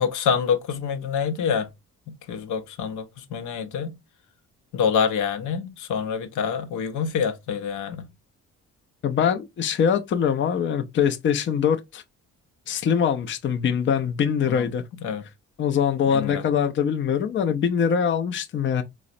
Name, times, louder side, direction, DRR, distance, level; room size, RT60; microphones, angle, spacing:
voice 1, 0.0-1.7 2.1-3.0 3.3-3.9 4.7-8.1 14.5-14.7 15.0-15.2 16.1-16.4, left 7 dB, 85° left, 0.6 m, -26 dB
voice 2, 9.0-12.0 12.7-14.8 15.6-18.8, left 7 dB, 40° left, 0.5 m, -23 dB
3.9 x 2.1 x 2.5 m
cardioid pair, 90°, 30 cm